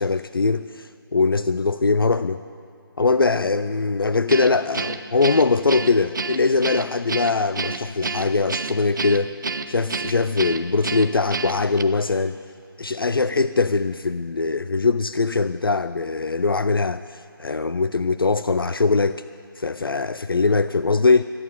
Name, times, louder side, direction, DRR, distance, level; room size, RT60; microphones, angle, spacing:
voice 1, 0.0-2.4 3.0-9.3 9.7-12.4 12.8-19.2 19.6-21.2, left 4 dB, 70° left, 13 dB, 0.5 m, -21 dB
Guitar, 4.3-11.8, right 4 dB, 55° right, 0.7 m, -29 dB
13.5 x 11.5 x 9.4 m, 2.5 s
figure-of-eight pair, 150°, 13 cm